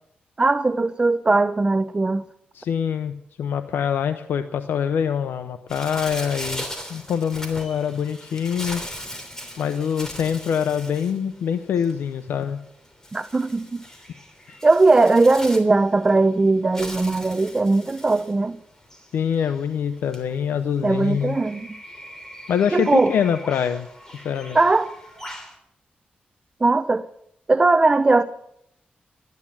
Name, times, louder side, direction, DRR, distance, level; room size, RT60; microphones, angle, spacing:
voice 1, 0.4-2.2 13.1-13.8 14.6-18.6 20.8-21.8 22.7-23.1 24.5-24.9 26.6-27.1 27.5-28.2, right 3 dB, 25° right, 0.7 m, -19 dB
voice 2, 2.5-6.6 6.9-8.8 9.6-12.6 14.5-14.6 19.1-21.4 22.5-23.9 24.2-24.6, left 8 dB, 90° left, 0.7 m, -24 dB
Bird, 5.7-25.6, left 1 dB, 15° left, 3.2 m, -39 dB
13.5 x 10.5 x 7.3 m
cardioid pair, 75°, 3 cm